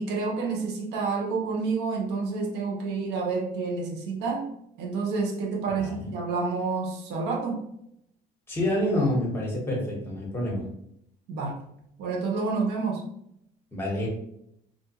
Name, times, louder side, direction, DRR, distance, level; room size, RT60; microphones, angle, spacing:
voice 1, 0.0-4.5 4.8-7.6 11.3-11.6 12.0-13.0, right 4 dB, 85° right, 0 dB, 0.7 m, -29 dB
voice 2, 8.5-10.6 13.7-14.1, left 1 dB, 15° left, -2 dB, 1.0 m, -27 dB
2.5 x 2.2 x 2.7 m, 0.75 s
cardioid pair, 110°, 17 cm